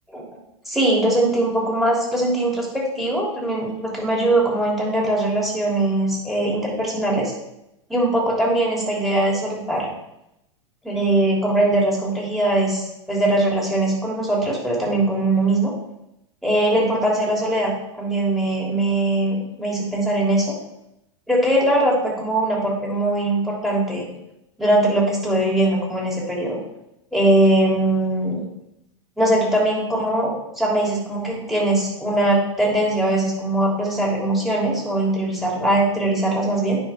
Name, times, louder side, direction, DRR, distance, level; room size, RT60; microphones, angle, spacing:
voice 1, 0.6-7.3 7.9-9.9 10.8-15.7 16.4-17.7 18.0-20.5 21.3-24.1 24.6-26.6 27.1-28.4 29.2-36.8, right 1 dB, ahead, -3 dB, 3.0 m, -21 dB
9.2 x 5.6 x 3.6 m, 0.85 s
hypercardioid pair, 95°, 15 cm